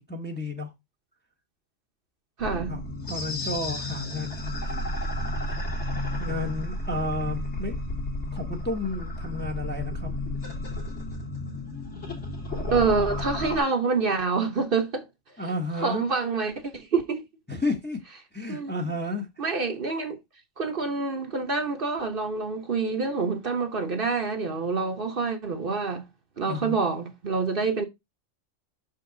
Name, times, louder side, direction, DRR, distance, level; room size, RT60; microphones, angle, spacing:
voice 1, 0.1-0.7 2.7-2.8 3.1-4.9 6.2-7.8 8.3-10.1 15.4-16.0 17.5-18.0 18.3-19.4 26.5-26.8, left 2 dB, 10° left, 0.9 m, -32 dB
sound 1, 2.4-13.6, left 1 dB, 60° left, 2.8 m, -32 dB
voice 2, 2.4-2.8 12.7-15.1 15.8-17.2 18.5-18.9 19.4-20.2 20.6-26.0 26.4-27.8, right 4 dB, 50° right, 1.1 m, -27 dB
6.1 x 5.5 x 3.8 m
omnidirectional pair, 1.3 m